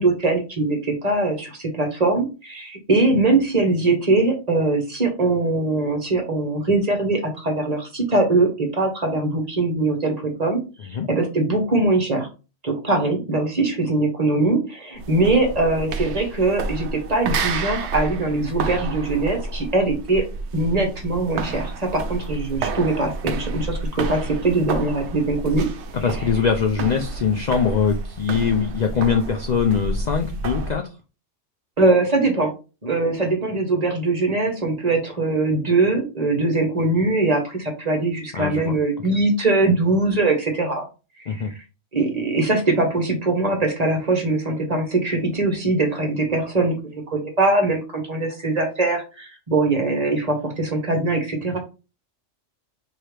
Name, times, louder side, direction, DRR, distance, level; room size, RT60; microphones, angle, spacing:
voice 1, 0.0-12.3 12.6-20.2 20.5-25.7 31.8-32.5 32.8-40.9 41.2-41.6 41.9-51.6, right 2 dB, 35° right, 3 dB, 1.0 m, -22 dB
sound 1, 15.0-30.8, right 3 dB, 65° right, 0.9 m, -30 dB
voice 2, 26.0-30.8 38.3-38.8 41.3-41.5 51.5-51.6, left 6 dB, 75° left, 4 dB, 0.4 m, -22 dB
4.7 x 2.8 x 3.2 m, 0.31 s
omnidirectional pair, 1.3 m